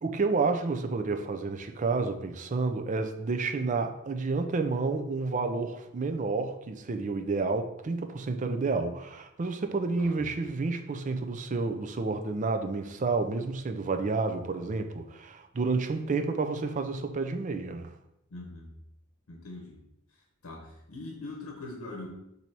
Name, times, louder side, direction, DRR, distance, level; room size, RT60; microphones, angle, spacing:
voice 1, 0.0-17.9, right 3 dB, 35° right, 7 dB, 0.4 m, -30 dB
voice 2, 18.3-18.7 19.3-19.8 20.4-22.1, left 2 dB, 80° left, 1 dB, 0.8 m, -42 dB
4.2 x 2.7 x 4.5 m, 0.82 s
head